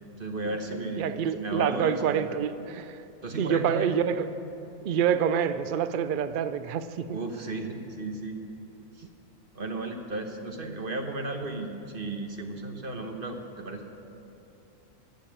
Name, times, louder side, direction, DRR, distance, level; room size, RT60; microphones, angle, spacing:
voice 1, 0.2-1.1 1.4-2.4 3.2-3.9 7.1-8.4 8.9-9.0 9.5-13.9, right 2 dB, 40° right, 4 dB, 1.2 m, -34 dB
voice 2, 1.0-3.0 3.4-4.3 4.8-7.2, right 8 dB, 80° right, 12 dB, 0.4 m, -27 dB
15.5 x 7.1 x 8.5 m, 2.9 s
omnidirectional pair, 1.4 m